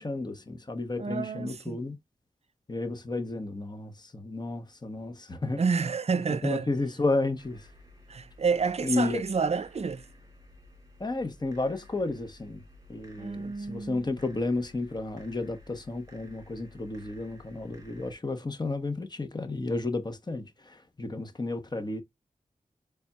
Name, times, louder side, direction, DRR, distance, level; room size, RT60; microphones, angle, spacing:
voice 1, 0.0-2.0 2.7-5.6 6.4-7.7 8.8-9.2 11.0-12.6 12.9-22.0, left 2 dB, 30° left, 0.9 m, -32 dB
voice 2, 1.0-1.8 5.6-6.7 8.1-10.1 13.2-14.0, right 5 dB, 50° right, 0.5 m, -29 dB
sound 1, 7.4-18.1, left 1 dB, 25° right, 2.4 m, -54 dB
4.1 x 3.5 x 2.2 m
cardioid pair, 55°, 14 cm